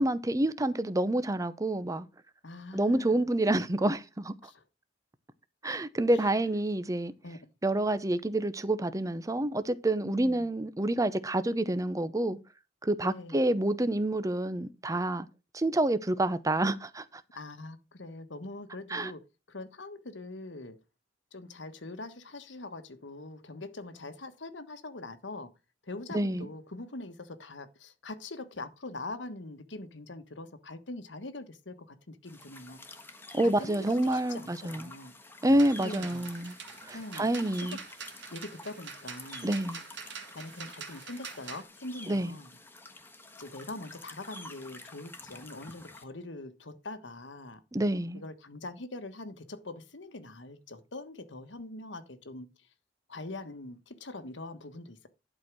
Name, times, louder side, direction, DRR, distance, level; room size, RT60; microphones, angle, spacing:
voice 1, 0.0-2.1 2.7-4.3 5.6-7.1 7.6-12.4 12.8-15.3 15.5-17.0 18.9-19.1 26.1-26.5 33.3-34.9 35.4-36.5 36.8-37.8 39.4-39.8 42.1-42.3 47.7-48.2, right 1 dB, 20° right, 0.7 m, -28 dB
voice 2, 2.4-3.2 3.4-3.7 4.4-4.6 7.2-7.4 10.0-10.5 13.0-13.5 17.3-19.2 19.5-20.8 21.3-25.5 25.8-32.8 33.4-35.1 35.8-36.3 36.9-37.8 38.3-39.6 40.3-42.5 43.4-47.6 48.1-52.5 53.1-55.1, left 2 dB, 85° left, 1.4 m, -43 dB
sound 1, 32.3-46.0, left 2 dB, 10° left, 1.3 m, -49 dB
sound 2, 35.5-41.6, right 6 dB, 70° right, 1.7 m, -45 dB
11.5 x 4.5 x 6.1 m
head